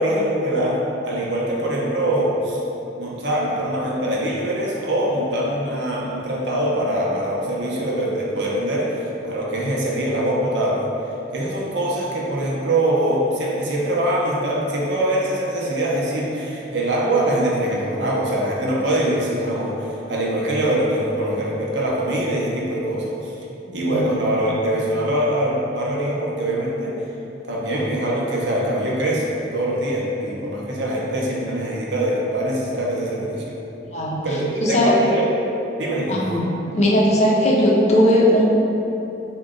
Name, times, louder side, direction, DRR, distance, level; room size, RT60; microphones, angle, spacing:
voice 1, 0.0-2.6 3.0-10.9 11.3-23.3 23.7-27.0 27.5-33.5 34.2-35.2 35.8-36.2, right 1 dB, 75° right, -4 dB, 0.6 m, -23 dB
voice 2, 23.7-24.0 33.9-34.2 34.6-34.9 36.1-36.4 36.7-38.4, left 1 dB, 40° left, -3 dB, 0.5 m, -18 dB
3.7 x 2.2 x 3.7 m, 2.9 s
head